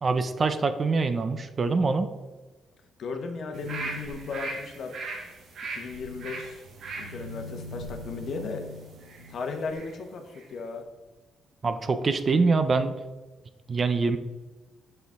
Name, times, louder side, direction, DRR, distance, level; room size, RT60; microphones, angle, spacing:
voice 1, 0.0-2.1 11.6-13.0 13.7-14.2, right 4 dB, 40° right, 10 dB, 0.5 m, -24 dB
voice 2, 3.0-5.0 5.7-6.6 6.9-8.6 9.3-10.8, left 4 dB, 60° left, 5 dB, 0.9 m, -36 dB
sound 1, 3.5-10.0 10.3-10.5, right 2 dB, 65° right, 1.5 m, -39 dB
5.8 x 5.7 x 3.7 m, 1.2 s
cardioid pair, 90°, 0 cm